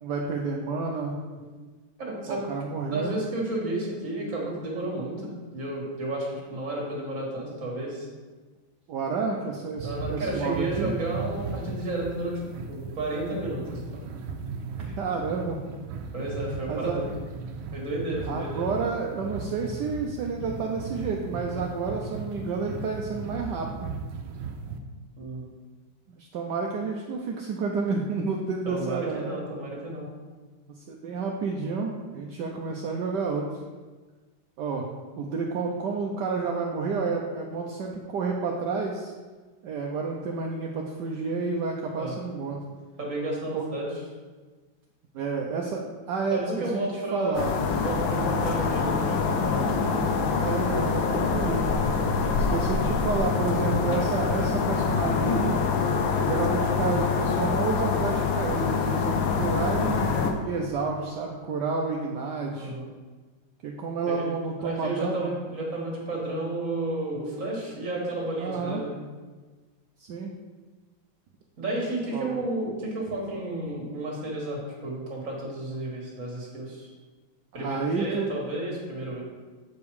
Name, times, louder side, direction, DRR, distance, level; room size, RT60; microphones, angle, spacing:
voice 1, 0.0-1.2 2.3-3.2 8.9-10.9 15.0-15.6 16.7-17.0 18.3-23.9 26.1-29.4 30.8-33.6 34.6-34.9 35.2-39.1 39.6-42.6 43.5-43.6 45.1-47.5 50.4-51.6 52.4-55.6 56.2-62.7 63.6-65.3 68.4-68.8 70.0-70.3 72.1-72.4 77.5-78.3, right 4 dB, 70° right, 0 dB, 1.2 m, -30 dB
voice 2, 2.0-2.4 2.9-8.1 9.8-12.4 12.7-14.0 16.1-17.0 17.7-18.7 25.2-25.5 28.7-30.1 42.0-42.1 43.0-43.9 46.3-47.5 47.8-49.9 62.5-62.9 64.1-64.3 64.6-68.9 71.6-76.9 77.5-79.2, right 1 dB, 40° right, -2 dB, 2.1 m, -32 dB
sound 1, 9.8-24.8, right 4 dB, 85° right, 1.5 m, -37 dB
sound 2, 47.3-60.3, left 5 dB, 75° left, 1.5 m, -25 dB
8.2 x 5.2 x 4.7 m, 1.3 s
omnidirectional pair, 2.2 m